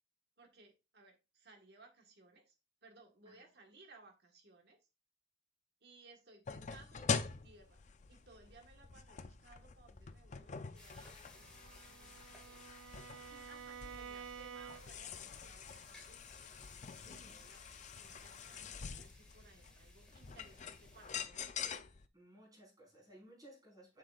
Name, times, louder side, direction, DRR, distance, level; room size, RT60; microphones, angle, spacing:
voice 1, 0.4-2.5 2.8-4.8 5.8-7.8 8.1-12.6 13.3-16.2 17.0-17.6 18.0-21.4, right 3 dB, 60° right, 1.5 m, -62 dB
sound 1, 6.5-22.1, left 5 dB, 40° left, 0.5 m, -45 dB
sound 2, 10.7-21.2, left 1 dB, 5° left, 2.0 m, -62 dB
Bowed string instrument, 11.3-15.2, right 7 dB, 90° right, 0.4 m, -51 dB
voice 2, 17.0-17.5 22.1-24.0, right 1 dB, 20° right, 4.5 m, -59 dB
7.4 x 6.8 x 2.5 m
head